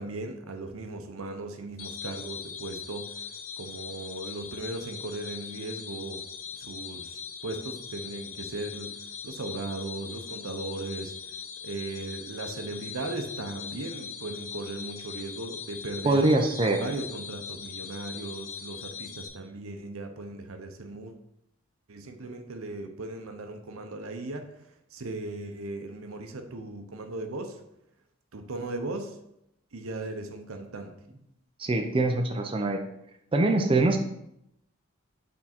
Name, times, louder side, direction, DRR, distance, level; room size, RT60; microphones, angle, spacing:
voice 1, 0.0-3.1 3.6-6.2 6.6-7.1 7.4-8.9 9.2-11.1 11.6-16.2 16.8-21.1 21.9-24.5 24.9-27.6 28.3-29.2 29.7-30.9, right 2 dB, 90° right, 6 dB, 0.8 m, -37 dB
sound 1, 1.8-19.3, left 7 dB, 75° left, 1.0 m, -41 dB
voice 2, 16.0-16.8 31.6-32.8 33.3-34.0, right 2 dB, 25° right, 4 dB, 0.5 m, -23 dB
6.1 x 3.7 x 4.4 m, 0.80 s
head